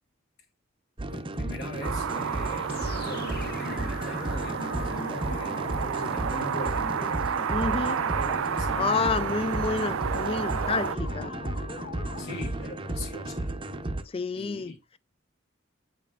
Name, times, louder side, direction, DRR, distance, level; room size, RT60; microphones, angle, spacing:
sound 1, 1.0-14.0, right 1 dB, 25° right, 0.7 m, -34 dB
voice 1, 1.1-2.7 3.0-7.2 7.9-9.1 12.2-13.5 14.4-14.8, left 1 dB, 80° left, 1.6 m, -41 dB
sound 2, 1.8-11.0, right 7 dB, 90° right, 0.4 m, -31 dB
sound 3, 2.7-12.5, left 4 dB, 50° left, 0.7 m, -41 dB
voice 2, 7.5-8.0 8.8-11.4 14.1-15.0, left 4 dB, 30° left, 0.3 m, -29 dB
7.6 x 5.3 x 2.4 m
head